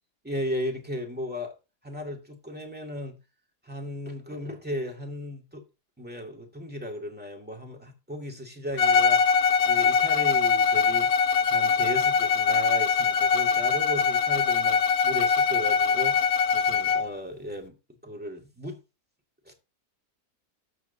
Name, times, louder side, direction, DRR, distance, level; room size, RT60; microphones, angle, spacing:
voice 1, 0.2-1.5 1.8-3.2 3.7-5.6 6.0-11.1 11.5-17.7 18.0-18.8 19.5-19.6, equal, 5° right, 2.1 m, -35 dB
Bowed string instrument, 8.8-17.1, left 6 dB, 70° left, 1.3 m, -22 dB
12.5 x 7.5 x 2.8 m
omnidirectional pair, 1.7 m